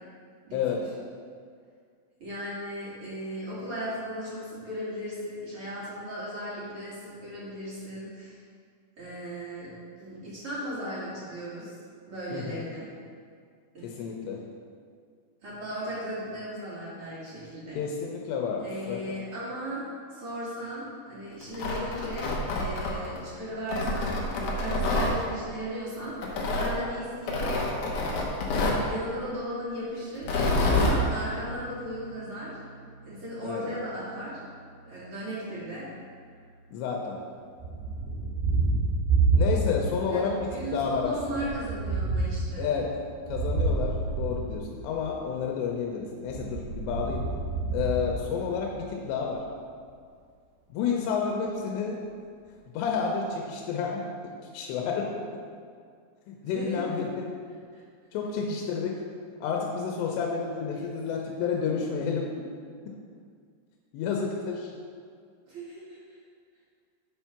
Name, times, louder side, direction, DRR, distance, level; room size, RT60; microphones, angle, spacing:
voice 1, 2.2-8.4 9.0-9.7 10.0-11.7 12.1-12.9 13.7-13.9 15.4-17.8 18.6-19.9 20.1-24.2 24.5-26.2 26.6-27.5 28.8-32.5 33.1-34.4 34.9-35.9 40.0-42.7 56.4-56.8 57.7-57.8 65.5-66.2, equal, 45° right, -9 dB, 1.9 m, -36 dB
voice 2, 13.8-14.4 17.8-19.0 33.4-33.8 36.7-37.2 39.3-41.1 42.6-42.9 43.3-47.3 47.7-49.4 50.7-52.0 52.7-55.2 56.3-57.3 58.1-59.0 59.4-62.4 63.9-64.7, left 6 dB, 90° left, 0 dB, 2.9 m, -30 dB
Tearing, 21.4-23.2 23.7-25.1 26.2-26.7 27.3-28.8 30.2-31.0, left 2 dB, 65° left, 2.2 m, -27 dB
Piano, 30.2-39.8, right 4 dB, 50° left, 2.1 m, -50 dB
Thunder, 37.6-40.0 40.3-45.2 46.2-48.9, right 3 dB, 85° right, 3.0 m, -29 dB
8.7 x 4.5 x 5.8 m, 2.1 s
omnidirectional pair, 4.8 m